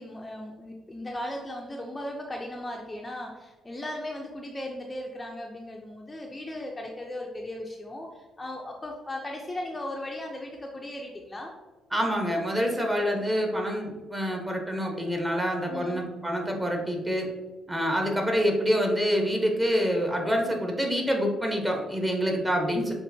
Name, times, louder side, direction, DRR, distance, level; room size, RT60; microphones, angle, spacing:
voice 1, 0.0-11.5 15.7-16.0, left 1 dB, 20° left, 0 dB, 0.5 m, -37 dB
voice 2, 11.9-17.3 17.7-22.9, equal, 15° right, 1 dB, 1.0 m, -26 dB
7.4 x 2.6 x 2.7 m, 1.2 s
cardioid pair, 90°, 0 cm